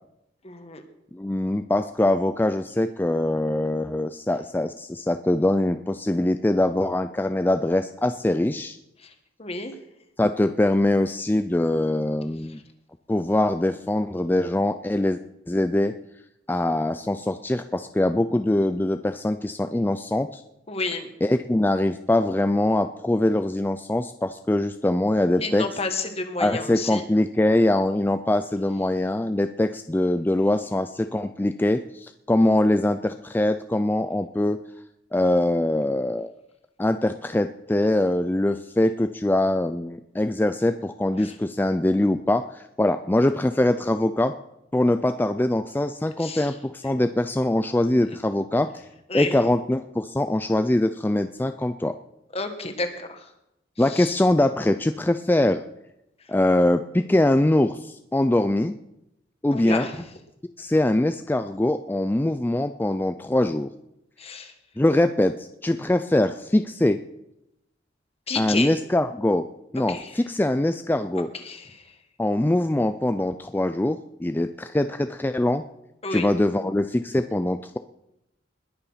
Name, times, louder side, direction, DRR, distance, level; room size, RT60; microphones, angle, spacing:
voice 1, 0.4-0.8 9.0-9.1 9.4-9.7 20.7-21.1 25.4-27.0 41.2-41.3 46.2-46.6 49.1-49.4 52.3-53.3 53.8-54.2 59.5-60.0 64.2-64.5 68.3-68.7 69.9-70.2 71.1-71.9 76.0-76.3, left 3 dB, 35° left, 6 dB, 1.6 m, -31 dB
voice 2, 1.1-8.8 10.2-12.6 13.1-15.2 15.5-15.9 16.5-20.4 21.2-25.6 26.4-34.6 35.1-36.3 36.8-44.3 44.7-48.7 49.1-51.9 53.8-55.6 56.3-58.8 59.4-59.9 60.6-63.7 64.8-67.0 68.4-69.5 69.7-71.3 72.2-75.6 76.1-77.8, left 1 dB, 10° left, 9 dB, 0.4 m, -23 dB
20.5 x 7.0 x 5.7 m, 0.84 s
head